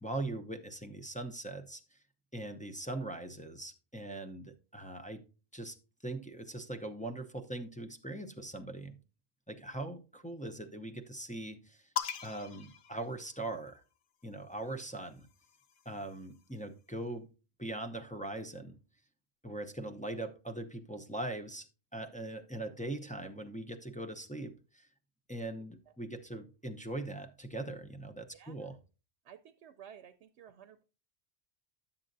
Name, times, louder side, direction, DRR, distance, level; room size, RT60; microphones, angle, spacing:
voice 1, 0.0-1.8 2.3-5.2 5.5-5.8 6.0-9.0 9.5-11.9 12.2-13.8 14.2-15.3 15.9-17.3 17.6-18.8 19.4-21.7 21.9-24.9 25.3-28.8, right 2 dB, 10° left, 0.5 m, -41 dB
sound 1, 12.0-13.8 14.9-16.5, left 10 dB, 55° left, 0.8 m, -42 dB
voice 2, 28.3-28.7 29.2-30.8, right 8 dB, 90° right, 0.9 m, -54 dB
11.0 x 7.4 x 2.6 m
omnidirectional pair, 1.1 m